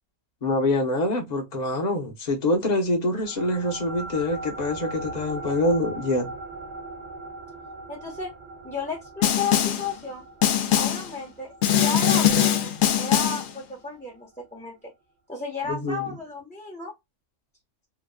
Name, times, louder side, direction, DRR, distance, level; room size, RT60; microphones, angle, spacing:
voice 1, 0.4-6.3 15.7-16.2, left 1 dB, 35° left, 0.9 m, -25 dB
sound 1, 3.2-14.0, right 2 dB, 80° right, 0.3 m, -40 dB
voice 2, 7.9-8.3 8.6-10.3 10.7-14.9 15.3-16.9, left 4 dB, 5° left, 0.8 m, -33 dB
Snare drum, 9.2-9.9 10.4-11.1 11.6-13.5, left 10 dB, 80° left, 1.0 m, -21 dB
2.9 x 2.3 x 2.2 m
omnidirectional pair, 1.4 m